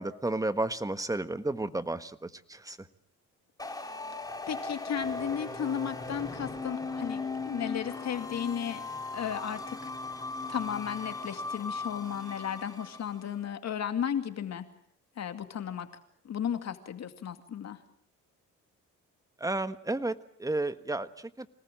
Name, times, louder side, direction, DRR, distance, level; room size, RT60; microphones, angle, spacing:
voice 1, 0.0-2.8 19.4-21.5, right 2 dB, 10° right, 12 dB, 1.4 m, -32 dB
sound 1, 3.6-13.2, left 3 dB, 10° left, 4.2 m, -38 dB
voice 2, 4.5-8.8 9.1-9.9 10.5-14.7 15.2-15.9 16.2-17.8, left 8 dB, 60° left, 8 dB, 2.4 m, -34 dB
26.0 x 19.0 x 7.7 m, 0.66 s
cardioid pair, 90°, 30 cm